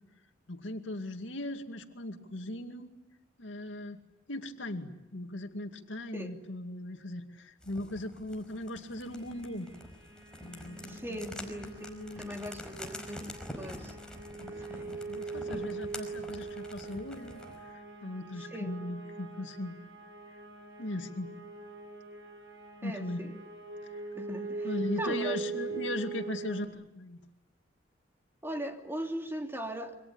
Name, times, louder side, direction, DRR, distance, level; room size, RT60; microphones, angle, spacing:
voice 1, 0.5-3.0 3.4-4.0 4.3-9.7 10.4-12.3 14.4-19.8 20.8-21.3 22.8-23.3 23.8-24.0 24.6-27.2, left 1 dB, 75° left, 6 dB, 2.4 m, -39 dB
sound 1, 7.6-17.6, left 1 dB, 5° left, 5.1 m, -47 dB
sound 2, 9.0-26.7, right 4 dB, 80° right, 7.6 m, -42 dB
voice 2, 10.8-14.0 14.6-14.9 15.5-15.6 18.5-18.7 22.8-23.3 24.1-24.7 25.0-25.4 28.4-29.9, equal, 10° right, 3 dB, 3.1 m, -39 dB
27.5 x 25.0 x 8.7 m, 0.89 s
head